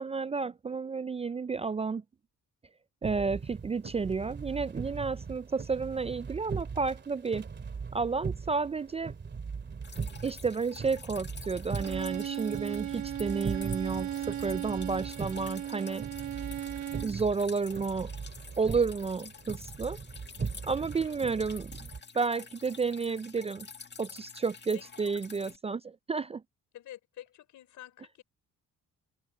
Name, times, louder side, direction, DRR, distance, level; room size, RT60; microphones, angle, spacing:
voice 1, 0.0-2.0 3.0-7.5 7.9-9.1 10.2-16.1 17.0-18.1 18.6-20.0 20.6-21.7 22.1-23.7 24.0-26.4, right 4 dB, 20° right, 0.3 m, -31 dB
sound 1, 3.0-22.0, right 5 dB, 35° right, 2.4 m, -40 dB
Drip, 9.8-25.6, left 5 dB, 35° left, 1.9 m, -49 dB
Bowed string instrument, 11.8-17.2, right 11 dB, 70° right, 1.1 m, -36 dB
voice 2, 24.7-25.1 26.7-28.2, left 12 dB, 80° left, 4.7 m, -49 dB
cardioid pair, 90°, 30 cm